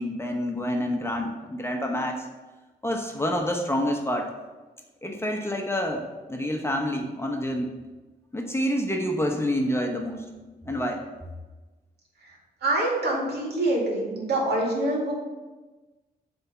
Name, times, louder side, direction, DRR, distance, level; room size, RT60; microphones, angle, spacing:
voice 1, 0.0-2.3 2.8-4.3 5.0-7.7 8.3-10.2 10.6-11.0, equal, 15° left, 2 dB, 0.9 m, -28 dB
voice 2, 12.6-15.1, right 1 dB, 70° right, -3 dB, 2.3 m, -25 dB
7.9 x 3.5 x 5.6 m, 1.2 s
cardioid pair, 95°, 17 cm